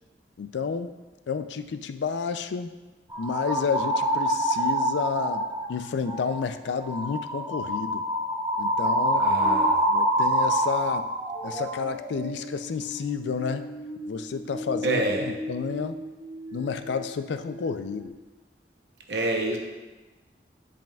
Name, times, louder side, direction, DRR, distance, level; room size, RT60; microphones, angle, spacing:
voice 1, 0.4-0.9 1.3-2.7 3.2-8.0 8.6-9.3 9.7-11.1 11.4-13.7 14.1-15.0 15.5-16.0 16.5-18.1, left 5 dB, 80° left, 10 dB, 0.4 m, -30 dB
sound 1, 3.1-5.7 6.1-6.4 6.8-17.1 17.4-18.1, right 1 dB, 15° right, 0.8 m, -28 dB
voice 2, 9.2-9.8 14.8-15.3 19.1-19.6, right 2 dB, 70° right, 2 dB, 0.8 m, -27 dB
10.5 x 5.1 x 2.3 m, 1.2 s
head